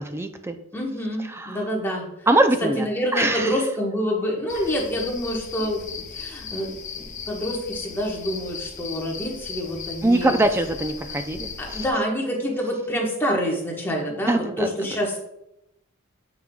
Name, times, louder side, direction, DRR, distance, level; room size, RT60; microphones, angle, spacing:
voice 1, 0.0-0.6 1.2-1.6 2.3-2.9 3.1-3.6 10.0-11.8 14.1-14.7, right 1 dB, 10° right, 8 dB, 0.4 m, -23 dB
voice 2, 0.7-2.1 2.8-5.8 6.1-10.3 11.6-15.2, equal, 10° left, -2 dB, 1.2 m, -27 dB
sound 1, 4.5-11.9, left 6 dB, 35° left, 0.6 m, -37 dB
7.6 x 5.8 x 2.3 m, 0.84 s
head